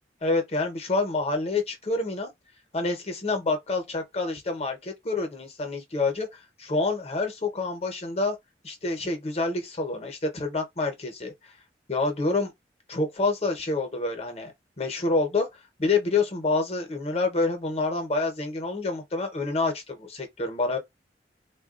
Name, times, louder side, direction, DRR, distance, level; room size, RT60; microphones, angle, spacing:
voice 1, 0.2-2.3 2.7-8.4 8.6-11.5 11.9-12.5 12.9-15.5 15.8-20.8, left 3 dB, 35° left, 0.8 m, -27 dB
3.6 x 2.3 x 2.4 m
head